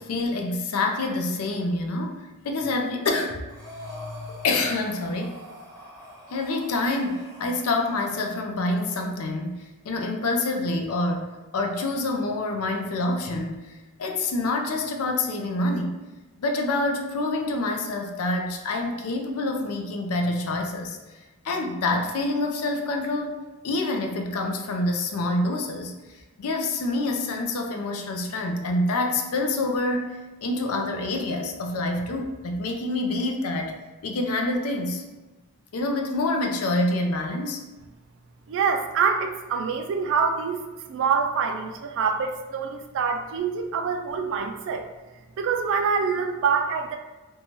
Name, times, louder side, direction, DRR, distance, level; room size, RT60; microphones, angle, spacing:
voice 1, 0.0-3.4 3.8-5.4 6.3-16.0 16.4-21.0 21.4-23.4 23.6-35.0 35.7-37.6, left 2 dB, 75° left, 3 dB, 0.4 m, -27 dB
Breathing, 3.5-8.4, left 1 dB, 15° right, 0.8 m, -43 dB
voice 2, 38.5-40.6 40.9-44.9 45.4-47.0, right 6 dB, 60° right, 6 dB, 0.3 m, -25 dB
2.7 x 2.2 x 3.0 m, 1.2 s
head